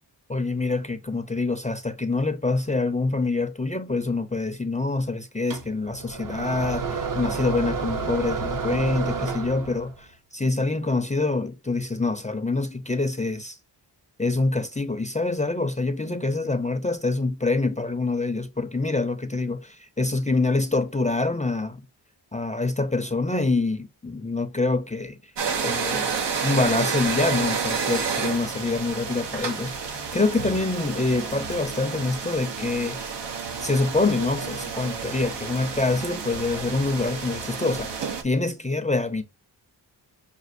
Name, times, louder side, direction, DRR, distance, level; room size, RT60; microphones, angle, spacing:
voice 1, 0.3-13.6 14.2-21.8 22.3-25.2 25.6-26.1 26.4-33.0 33.6-39.2, left 3 dB, 15° left, 0.5 m, -26 dB
sound 1, 5.5-10.0, right 4 dB, 50° right, 0.8 m, -30 dB
sound 2, 25.4-38.2, right 6 dB, 80° right, 0.9 m, -30 dB
6.0 x 2.5 x 2.6 m
cardioid pair, 75°, 42 cm